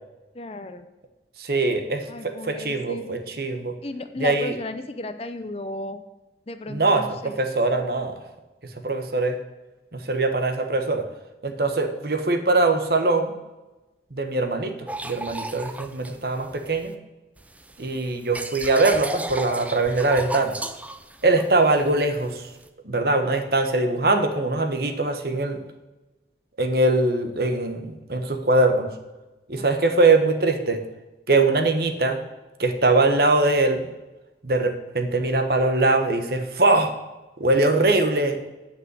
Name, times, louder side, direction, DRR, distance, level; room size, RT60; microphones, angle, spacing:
voice 1, 0.3-0.9 2.1-3.2 3.8-6.0 6.5-7.3 21.4-21.5 29.6-29.7, left 2 dB, 35° left, 9 dB, 0.6 m, -34 dB
voice 2, 1.4-3.7 4.2-4.5 6.7-8.1 8.8-9.4 10.1-11.0 11.4-13.3 14.1-14.7 15.0-16.9 17.8-20.6 21.2-22.4 22.8-25.6 26.6-28.9 29.5-30.8 31.3-32.2 32.6-33.8 34.4-36.9 37.4-38.4, right 2 dB, 55° right, 6 dB, 1.1 m, -22 dB
sound 1, 14.9-16.9 17.4-22.7, right 1 dB, 10° right, 0.4 m, -35 dB
9.7 x 5.3 x 8.0 m, 1.1 s
head